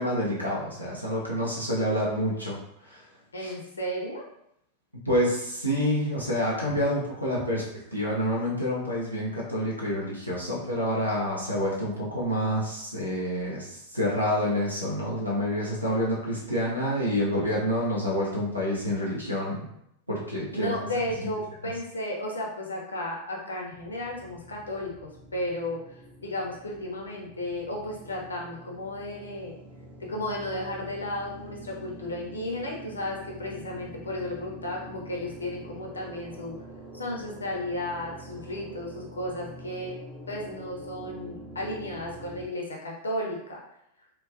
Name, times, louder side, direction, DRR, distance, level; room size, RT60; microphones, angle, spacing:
voice 1, 0.0-3.1 3.4-3.5 4.9-7.6 7.9-19.7 20.1-20.8, equal, 85° right, -5 dB, 0.6 m, -28 dB
voice 2, 3.3-4.2 20.5-29.5 30.0-36.6 36.9-40.0 40.3-43.6, left 1 dB, 75° left, -1 dB, 0.6 m, -34 dB
sound 1, 23.7-42.5, right 1 dB, 20° right, 0.5 m, -46 dB
3.0 x 2.2 x 2.5 m, 0.77 s
figure-of-eight pair, 90°, 0 cm